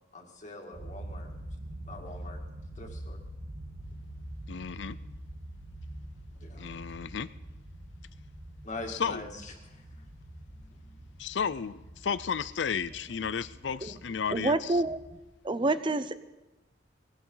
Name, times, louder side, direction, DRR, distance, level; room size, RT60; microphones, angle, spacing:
voice 1, 0.1-1.3 1.9-2.4 2.8-3.2 6.4-6.8 8.6-10.0 10.9-11.0, left 2 dB, 40° left, 2 dB, 2.3 m, -43 dB
sound 1, 0.7-15.2, right 1 dB, 65° right, 3.7 m, -45 dB
voice 2, 4.5-5.0 6.6-7.3 8.9-9.3 11.2-14.8, left 6 dB, 70° left, 16 dB, 0.5 m, -33 dB
voice 3, 14.3-15.0 15.4-16.2, right 2 dB, 25° right, 13 dB, 0.7 m, -27 dB
20.0 x 17.0 x 4.0 m, 1.1 s
head